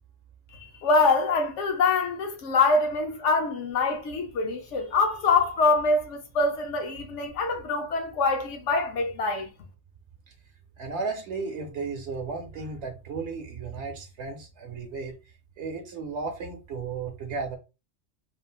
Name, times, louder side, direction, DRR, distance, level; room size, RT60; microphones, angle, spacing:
voice 1, 0.5-9.5, left 3 dB, 85° left, 1.0 m, -24 dB
voice 2, 10.8-15.2 15.6-17.6, right 4 dB, 75° right, 0.9 m, -34 dB
3.2 x 2.4 x 2.3 m
omnidirectional pair, 1.2 m